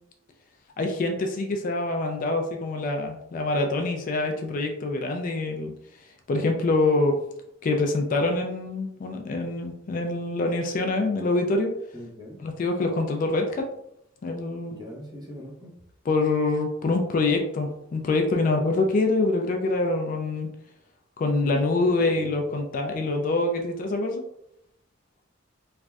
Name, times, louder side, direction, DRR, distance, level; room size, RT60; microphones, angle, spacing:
voice 1, 0.8-5.7 6.3-7.2 7.6-11.7 12.4-13.7 14.2-14.8 16.1-20.5 21.2-24.2, left 2 dB, 40° left, 3 dB, 0.3 m, -25 dB
voice 2, 11.9-12.4 14.7-15.7 21.8-22.5, left 1 dB, 20° right, -3 dB, 0.8 m, -41 dB
3.2 x 2.5 x 2.3 m, 0.77 s
head